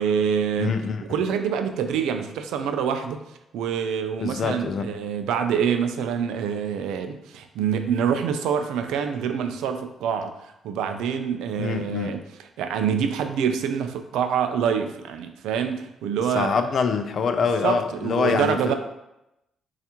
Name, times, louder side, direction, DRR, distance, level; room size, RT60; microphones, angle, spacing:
voice 1, 0.0-0.8 1.1-3.2 3.5-10.3 10.6-12.2 12.6-16.6 17.6-18.7, right 7 dB, 90° right, 7 dB, 0.3 m, -26 dB
voice 2, 0.6-1.0 4.2-4.9 11.6-12.1 16.3-18.7, left 5 dB, 55° left, 8 dB, 0.3 m, -25 dB
4.2 x 2.4 x 2.8 m, 0.89 s
cardioid pair, 90°, 0 cm